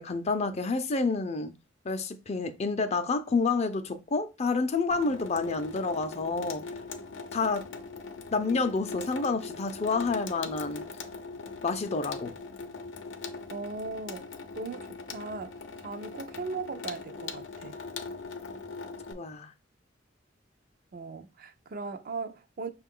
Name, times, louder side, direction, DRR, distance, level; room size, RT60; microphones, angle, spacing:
voice 1, 0.0-1.5 1.8-6.6 7.3-7.7 8.3-10.9 11.6-12.3 19.1-19.5, left 4 dB, 35° left, 0.5 m, -29 dB
Water tap faucet / Sink (filling or washing), 4.9-19.1, left 4 dB, 85° left, 0.6 m, -41 dB
voice 2, 13.5-14.3 14.5-17.8 20.9-22.7, right 4 dB, 50° right, 0.5 m, -38 dB
5.9 x 2.3 x 3.6 m
head